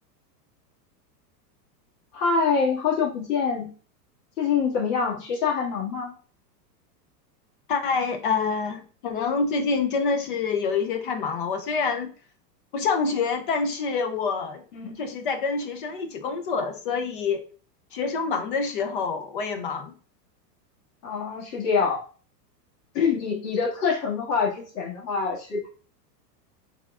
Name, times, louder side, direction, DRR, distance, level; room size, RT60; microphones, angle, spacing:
voice 1, 2.1-3.7 4.4-6.1 14.7-15.0 21.0-22.0 22.9-25.7, left 5 dB, 70° left, -2 dB, 1.9 m, -25 dB
voice 2, 7.7-12.1 12.7-14.6 15.0-17.4 17.9-19.9, left 5 dB, 35° left, 7 dB, 0.4 m, -26 dB
4.5 x 3.5 x 2.3 m, 0.38 s
supercardioid pair, 160°, 50 cm